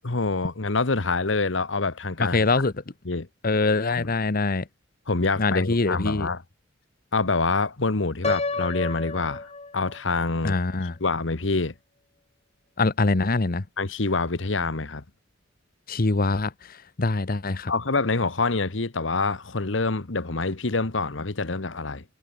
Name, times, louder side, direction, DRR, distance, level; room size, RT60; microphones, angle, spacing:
voice 1, 0.0-2.4 3.0-3.3 4.0-4.1 5.1-6.4 7.1-9.5 9.7-10.6 11.0-11.7 13.8-15.0 17.7-22.0, left 3 dB, 75° left, 1.4 m, -26 dB
voice 2, 2.2-2.7 3.4-4.7 5.4-6.3 10.4-10.9 12.8-13.6 15.9-17.7, left 3 dB, 50° left, 1.0 m, -24 dB
Piano, 8.2-10.2, left 3 dB, 35° left, 2.8 m, -30 dB
head